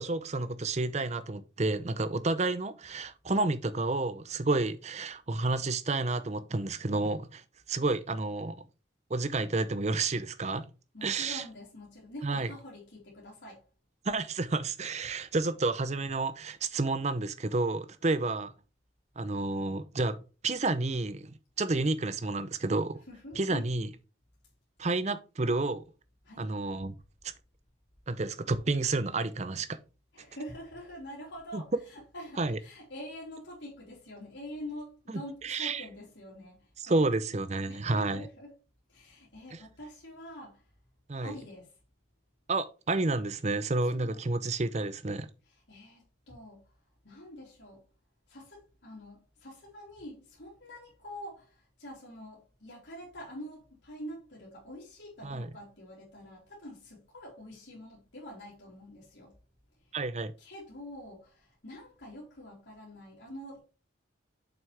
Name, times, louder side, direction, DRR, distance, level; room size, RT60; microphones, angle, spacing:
voice 1, 0.0-7.4 7.7-8.6 9.1-10.7 11.0-11.4 12.2-12.5 14.1-18.5 19.2-20.2 20.4-23.0 23.4-23.9 24.8-25.8 26.4-26.9 28.1-29.7 31.5-31.6 32.4-32.6 35.4-35.8 36.8-38.3 41.1-41.4 42.5-45.3 55.2-55.5 59.9-60.3, right 3 dB, 35° right, 0.6 m, -30 dB
voice 2, 10.9-13.6 23.1-23.6 26.2-26.5 30.1-37.1 37.7-38.5 38.9-40.6 41.2-41.7 43.9-44.2 45.5-46.6 47.0-47.8 48.3-59.3 60.4-63.6, equal, 65° left, 3.1 m, -46 dB
7.2 x 5.8 x 3.4 m
head